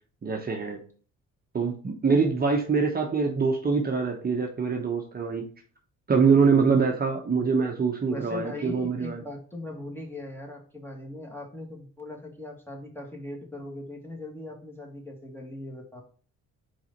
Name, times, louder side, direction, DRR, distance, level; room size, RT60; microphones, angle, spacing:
voice 1, 0.2-0.8 1.5-5.5 6.1-9.2, right 5 dB, 30° right, 2 dB, 1.0 m, -24 dB
voice 2, 8.1-16.0, left 1 dB, 5° left, 1 dB, 1.8 m, -40 dB
4.8 x 4.0 x 5.2 m, 0.43 s
cardioid pair, 90°, 30 cm